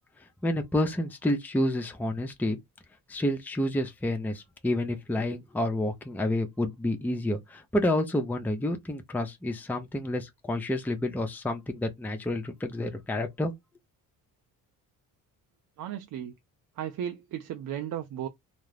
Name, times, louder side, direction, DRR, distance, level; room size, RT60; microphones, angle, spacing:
voice 1, 0.4-2.6 3.1-13.5, left 1 dB, 5° left, 0.6 m, -29 dB
voice 2, 15.8-16.3 16.8-18.3, right 10 dB, 50° right, 0.5 m, -35 dB
2.3 x 2.0 x 3.2 m
supercardioid pair, 65°, 41 cm